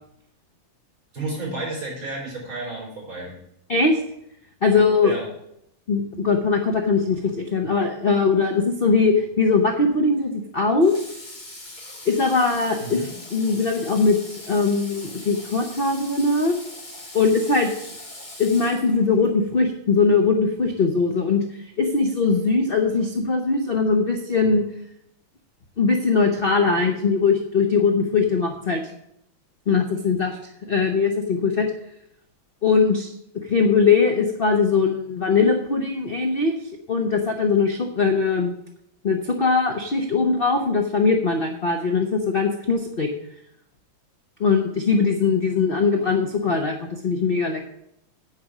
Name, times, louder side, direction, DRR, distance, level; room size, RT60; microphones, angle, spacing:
voice 1, 1.1-3.4 5.0-5.2 12.8-13.1, right 2 dB, 70° right, -5 dB, 5.4 m, -31 dB
voice 2, 4.6-5.1 5.9-10.9 12.1-13.0 13.3-16.5 17.1-17.7 18.4-24.6 25.8-28.8 29.7-30.4 30.7-31.7 32.6-33.1 33.5-36.6 36.9-38.5 39.0-43.1 44.4-47.7, left 4 dB, 65° left, 3 dB, 0.5 m, -21 dB
Water / Water tap faucet, 10.8-19.3, left 1 dB, 20° left, 2.2 m, -41 dB
9.5 x 4.9 x 7.1 m, 0.77 s
omnidirectional pair, 2.3 m